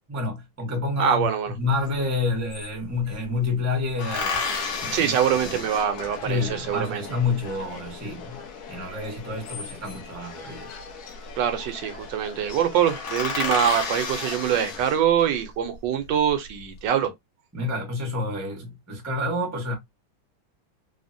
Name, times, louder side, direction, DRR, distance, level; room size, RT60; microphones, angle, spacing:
voice 1, 0.1-1.3 1.5-4.4 4.8-5.1 5.4-5.7 6.2-8.4 8.7-10.7 17.5-19.7, left 3 dB, 25° right, 0.4 m, -28 dB
voice 2, 1.0-1.5 4.9-7.1 11.4-17.1, right 9 dB, 75° right, 1.2 m, -24 dB
sound 1, 1.9-2.0 2.2-3.2 4.0-6.5 9.2-10.2 11.3-11.7 12.0-12.1 12.5-12.6 12.8-15.4 16.0-16.6, left 4 dB, 85° left, 1.5 m, -32 dB
Subway metro underground, 4.4-15.0, left 6 dB, 65° left, 1.0 m, -41 dB
3.5 x 2.0 x 2.5 m
omnidirectional pair, 2.1 m